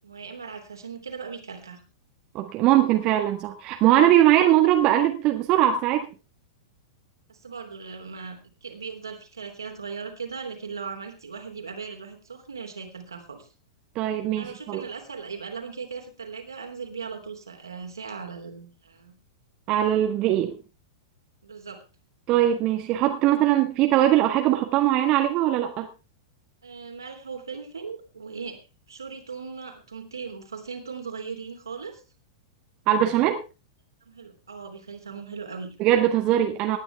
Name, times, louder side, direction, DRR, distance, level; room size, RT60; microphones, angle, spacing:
voice 1, 0.0-1.8 7.3-13.5 14.4-19.1 21.4-21.8 26.6-28.6 28.9-32.0 34.0-35.7, right 5 dB, 75° right, 3 dB, 3.3 m, -38 dB
voice 2, 2.3-6.1 13.9-14.8 19.7-20.6 22.3-25.9 32.9-33.4 35.8-36.8, right 12 dB, 35° right, 4 dB, 1.6 m, -21 dB
19.0 x 10.0 x 3.5 m, 0.31 s
figure-of-eight pair, 95°, 2 cm